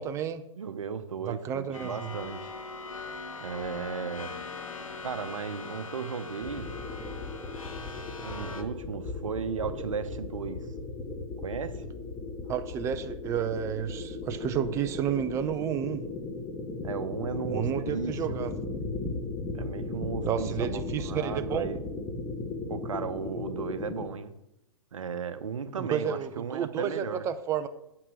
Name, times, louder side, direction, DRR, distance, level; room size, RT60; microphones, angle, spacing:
voice 1, 0.0-0.4 1.3-2.1 12.5-16.0 17.5-18.5 20.3-21.7 25.8-27.7, right 9 dB, 15° right, 10 dB, 0.5 m, -31 dB
voice 2, 0.6-2.5 3.4-4.3 5.0-6.7 8.2-10.7 11.4-11.8 16.8-18.4 19.5-21.8 22.7-24.3 24.9-27.3, right 6 dB, 70° right, 10 dB, 0.9 m, -35 dB
sound 1, 1.7-8.6, left 4 dB, 80° left, 1.2 m, -41 dB
sound 2, 6.4-24.1, left 3 dB, 10° left, 1.2 m, -36 dB
8.0 x 5.9 x 6.1 m, 0.85 s
hypercardioid pair, 125°, 17 cm